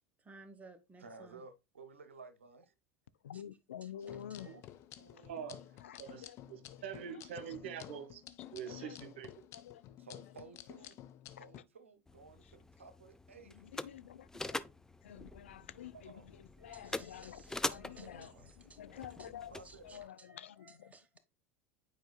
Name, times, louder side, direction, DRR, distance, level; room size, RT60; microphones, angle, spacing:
voice 1, 0.2-1.4 3.3-3.4 3.8-3.9 4.3-4.6 16.6-21.2, right 3 dB, 20° right, 1.2 m, -59 dB
voice 2, 1.0-2.7 4.4-4.6 10.0-11.0 11.4-13.6 15.9-16.3 17.8-18.4 19.5-20.2, right 4 dB, 80° right, 0.8 m, -55 dB
voice 3, 3.2-4.5 5.2-5.3 5.8-6.4 6.7-6.8 7.1-7.3 8.7-9.0 9.5-10.0 11.4-11.5 13.5-14.6 15.0-20.9, left 10 dB, 75° left, 0.4 m, -50 dB
sound 1, 4.0-11.6, left 12 dB, 45° left, 0.7 m, -52 dB
voice 4, 5.0-5.6 6.0-8.2 8.5-9.3, right 8 dB, 65° right, 1.2 m, -45 dB
sound 2, 12.1-20.1, left 2 dB, 10° left, 0.4 m, -44 dB
9.1 x 4.6 x 2.3 m
figure-of-eight pair, 75°, 7 cm